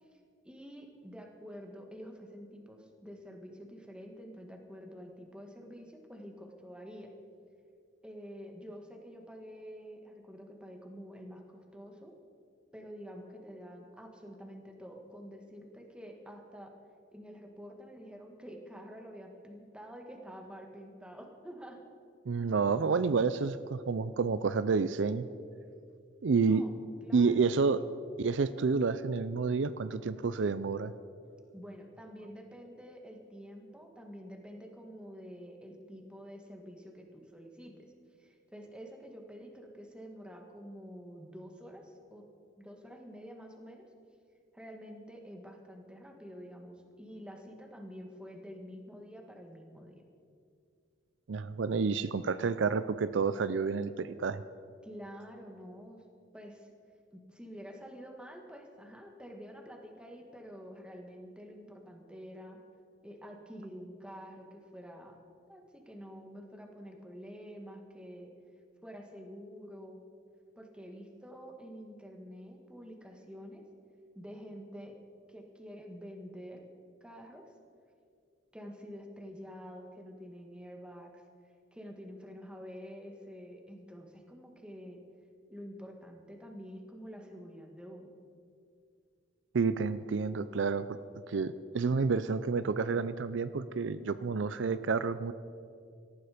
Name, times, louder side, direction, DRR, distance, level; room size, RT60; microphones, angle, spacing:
voice 1, 0.4-7.1 8.0-12.1 12.7-16.7 17.1-21.8 26.4-26.8 27.0-27.5 31.5-37.9 38.2-42.3 42.6-43.9 44.5-50.0 54.8-56.0 56.3-56.7 57.1-62.6 63.0-65.2 65.5-68.3 68.8-70.0 70.6-73.6 74.1-75.0 75.3-76.6 77.0-77.5 78.5-81.2 81.7-85.0 85.5-88.1, equal, 5° right, 2 dB, 1.7 m, -48 dB
voice 2, 22.3-25.3 26.2-26.6 27.1-27.8 28.2-30.9 51.3-54.4 89.5-90.9 91.3-95.3, right 4 dB, 70° right, 14 dB, 0.5 m, -29 dB
18.5 x 14.0 x 5.1 m, 2.3 s
head